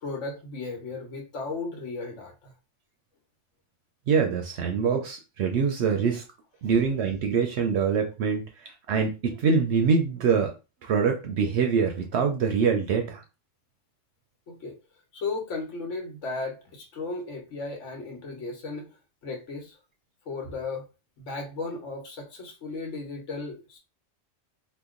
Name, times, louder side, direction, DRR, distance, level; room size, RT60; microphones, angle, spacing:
voice 1, 0.0-2.5 14.5-14.8 15.1-19.0 19.2-19.8 20.3-20.8 21.2-23.8, left 3 dB, 75° left, 3 dB, 1.3 m, -35 dB
voice 2, 4.1-6.2 6.6-10.5 10.8-13.2, right 6 dB, 70° right, 4 dB, 0.8 m, -24 dB
2.9 x 2.2 x 3.6 m, 0.29 s
omnidirectional pair, 1.2 m